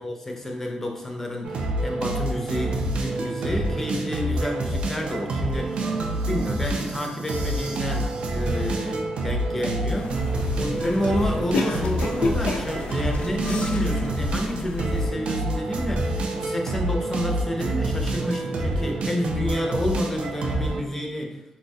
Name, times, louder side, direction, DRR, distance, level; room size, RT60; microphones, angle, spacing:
voice 1, 0.0-5.9 6.2-10.2 10.6-21.4, left 1 dB, 15° left, 1 dB, 0.4 m, -30 dB
sound 1, 1.4-20.8, right 1 dB, 60° right, 0.4 m, -27 dB
sound 2, 9.9-15.1, left 3 dB, 80° left, 0.4 m, -31 dB
3.8 x 2.2 x 2.6 m, 0.88 s
wide cardioid pair, 170°, 2 cm